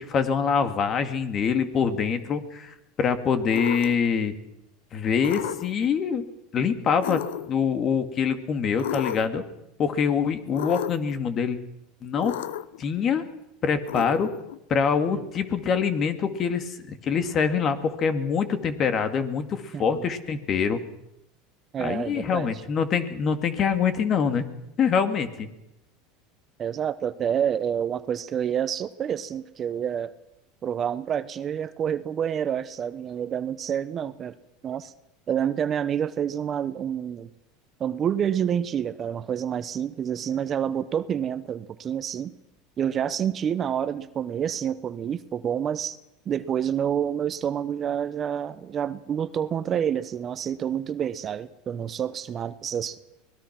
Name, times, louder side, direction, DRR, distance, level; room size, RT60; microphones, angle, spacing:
voice 1, 0.0-4.3 4.9-6.3 6.5-9.4 9.8-11.6 12.0-12.3 12.8-13.3 13.6-14.3 14.7-20.8 21.8-24.5 24.8-25.5, left 6 dB, 40° left, 9 dB, 2.4 m, -25 dB
sound 1, 3.5-4.1 5.2-5.9 7.0-7.7 8.8-9.5 10.5-11.1 12.2-12.8 13.9-14.6, left 12 dB, 80° left, 0.9 m, -33 dB
voice 2, 19.7-20.0 21.7-22.5 26.6-30.1 30.6-34.3 34.6-34.9 35.3-37.3 37.8-42.3 42.8-46.0 46.3-53.0, right 9 dB, 35° right, 14 dB, 1.0 m, -28 dB
24.5 x 19.5 x 6.1 m, 0.86 s
supercardioid pair, 110°, 0 cm